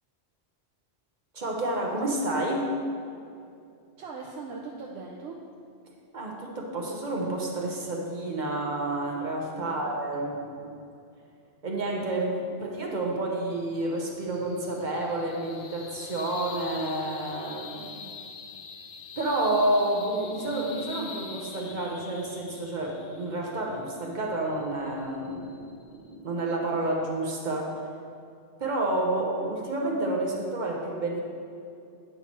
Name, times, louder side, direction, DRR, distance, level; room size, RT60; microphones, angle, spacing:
voice 1, 1.3-2.7 6.1-10.7 11.6-17.8 19.2-25.6 26.0-27.8 28.6-31.2, right 2 dB, 45° right, -1 dB, 1.0 m, -29 dB
voice 2, 4.0-5.4 9.6-9.9 17.6-18.1, right 4 dB, 75° right, -2 dB, 0.9 m, -41 dB
sound 1, 13.5-26.1, left 6 dB, 60° left, 0.6 m, -45 dB
9.3 x 5.7 x 3.0 m, 2.5 s
omnidirectional pair, 1.1 m